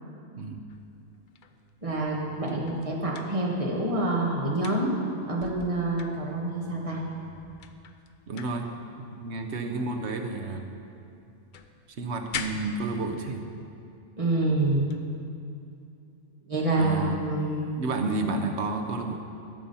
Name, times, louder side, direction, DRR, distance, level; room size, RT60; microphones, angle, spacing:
voice 1, 0.3-0.6 8.3-8.7 9.2-10.7 12.0-13.4 16.8-17.2 17.8-19.2, right 3 dB, 60° right, 4 dB, 1.0 m, -31 dB
sound 1, 0.7-4.0 4.3-6.7 7.3-7.4 7.6-10.9 11.2-13.5 14.2-14.6 14.9-15.1 18.2-18.4, left 6 dB, 65° left, 0.5 m, -44 dB
voice 2, 1.8-4.9 5.3-7.0 14.2-14.9 16.4-17.7, right 2 dB, 25° right, -3 dB, 1.6 m, -27 dB
12.5 x 7.5 x 5.5 m, 2.5 s
omnidirectional pair, 1.4 m